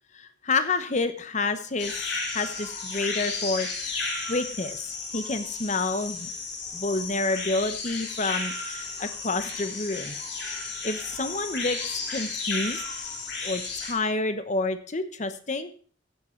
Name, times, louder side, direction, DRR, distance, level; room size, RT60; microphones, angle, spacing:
voice 1, 0.1-4.0 4.3-6.3 6.7-10.2 10.8-12.8 13.4-15.7, left 3 dB, 40° left, 10 dB, 1.1 m, -29 dB
sound 1, 1.8-13.9, left 3 dB, 65° left, 3.3 m, -33 dB
15.0 x 7.7 x 4.6 m, 0.44 s
head